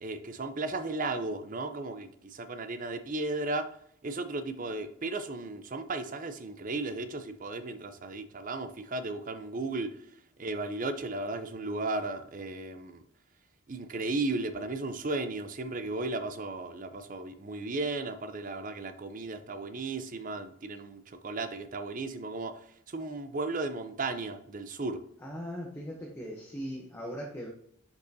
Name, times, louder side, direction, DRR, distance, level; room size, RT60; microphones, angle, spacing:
voice 1, 0.0-3.7 4.0-9.9 10.4-13.0 13.7-22.5 22.9-25.0, right 2 dB, 40° right, 9 dB, 0.5 m, -35 dB
voice 2, 25.2-27.5, equal, 10° left, -2 dB, 0.8 m, -39 dB
6.5 x 5.4 x 2.7 m, 0.68 s
head